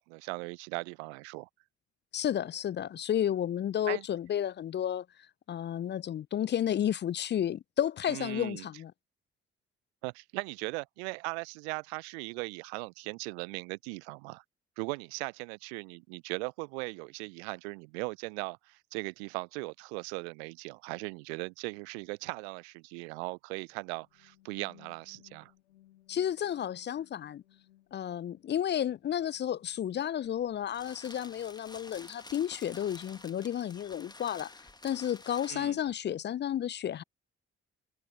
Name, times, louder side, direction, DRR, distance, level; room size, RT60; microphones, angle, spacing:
voice 1, 0.0-1.5 3.9-4.0 8.1-8.7 10.0-14.4 14.8-25.5 35.5-35.8, right 30 dB, 70° right, 0.5 m, -39 dB
voice 2, 2.1-5.1 5.5-8.9 26.1-27.4 27.9-34.5 34.8-37.0, left 10 dB, 30° left, 0.5 m, -32 dB
sound 1, 23.7-31.5, left 14 dB, 80° left, 2.4 m, -64 dB
sound 2, 30.2-35.9, left 2 dB, 10° left, 1.6 m, -51 dB
figure-of-eight pair, 45°, 34 cm